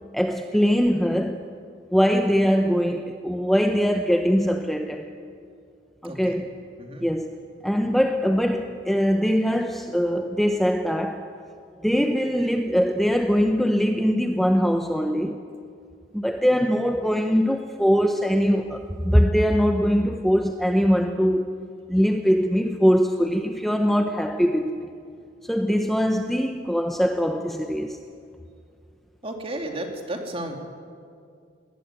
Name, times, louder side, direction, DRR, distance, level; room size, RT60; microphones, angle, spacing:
voice 1, 0.1-1.4 1.9-5.1 6.0-6.5 7.0-7.4 7.6-11.3 11.8-15.4 16.1-21.5 21.9-24.9 25.4-28.0, equal, ahead, 0.8 m, -22 dB
voice 2, 6.0-6.5 6.8-7.1 29.2-30.6, right 1 dB, 30° right, 2.8 m, -33 dB
20.5 x 19.5 x 9.1 m
head